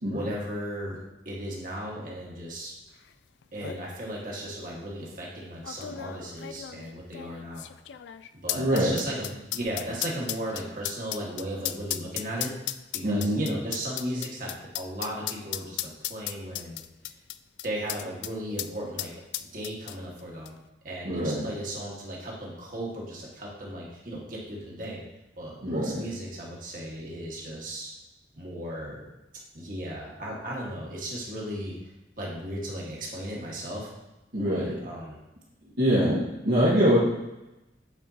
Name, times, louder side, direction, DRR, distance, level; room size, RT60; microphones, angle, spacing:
voice 1, 0.1-1.0 1.2-2.7 3.5-7.6 8.4-12.5 13.0-16.8 17.6-19.1 19.4-20.5 20.8-25.0 25.4-27.9 28.3-29.1 29.5-31.8 32.2-33.9 34.4-35.2, right 1 dB, 50° right, -3 dB, 1.7 m, -36 dB
sound 1, 3.1-3.2 3.4-3.8 4.6-4.7 5.6-18.3 18.6-18.7 19.0-20.2 20.5-20.6, left 13 dB, 85° left, 0.3 m, -35 dB
voice 2, 8.5-9.0 13.0-13.4 21.0-21.5 25.6-26.0 34.3-34.7 35.8-37.0, equal, 75° right, -9 dB, 1.5 m, -24 dB
8.9 x 4.5 x 2.8 m, 0.98 s
head